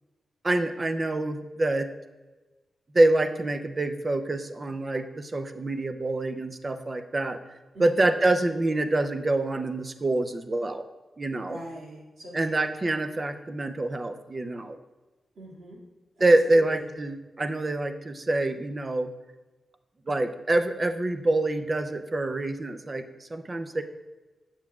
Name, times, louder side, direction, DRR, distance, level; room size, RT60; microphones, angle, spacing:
voice 1, 0.4-1.9 2.9-7.4 7.8-10.8 11.2-11.6 12.3-14.8 16.2-19.1 20.1-23.8, right 2 dB, 30° right, 9 dB, 0.5 m, -26 dB
voice 2, 7.7-8.1 11.5-12.7 15.4-15.8 16.2-16.8 23.7-23.8, right 1 dB, 75° right, -4 dB, 1.9 m, -43 dB
7.2 x 6.9 x 2.3 m, 1.2 s
cardioid pair, 95°, 0 cm